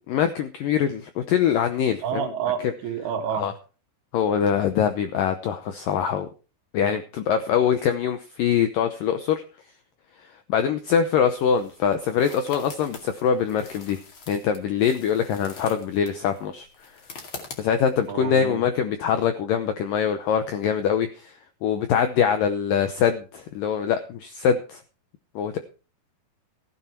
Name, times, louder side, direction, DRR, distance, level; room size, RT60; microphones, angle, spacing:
voice 1, 0.1-2.3 3.4-3.5 4.1-6.3 6.7-9.4 10.2-14.0 14.3-16.7 16.9-17.0 17.6-24.8 25.4-25.6, left 8 dB, 85° left, 8 dB, 1.9 m, -23 dB
voice 2, 2.0-3.5 18.1-18.7, right 8 dB, 65° right, 5 dB, 3.4 m, -29 dB
sound 1, 10.9-18.1, left 4 dB, 40° left, 2.1 m, -44 dB
15.5 x 9.6 x 4.6 m, 0.35 s
omnidirectional pair, 5.1 m